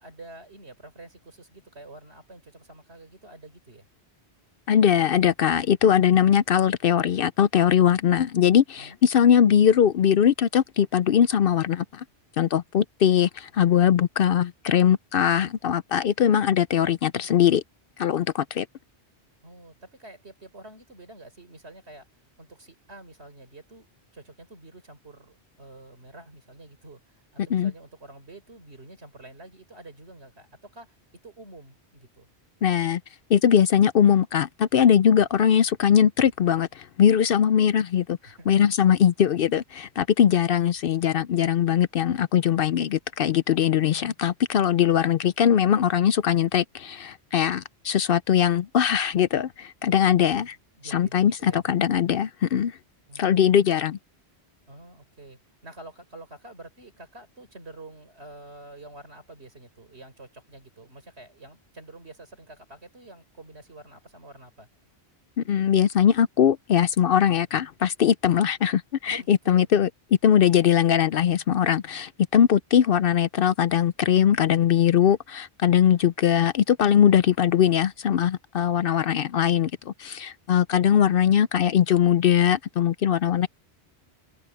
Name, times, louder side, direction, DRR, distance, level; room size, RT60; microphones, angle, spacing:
voice 1, 0.0-3.9 8.7-9.0 19.4-22.1 22.4-23.9 24.1-31.0 31.2-32.3 38.2-39.0 50.0-51.6 53.1-53.7 54.7-64.7 69.1-69.7, right 2 dB, 75° right, 4.3 m, -47 dB
voice 2, 4.7-12.0 12.4-17.6 18.0-18.7 27.5-27.7 32.6-33.0 33.3-50.6 50.9-52.8 53.2-54.0 65.5-69.9 70.2-83.5, left 9 dB, 65° left, 0.7 m, -21 dB
open air
omnidirectional pair, 1.1 m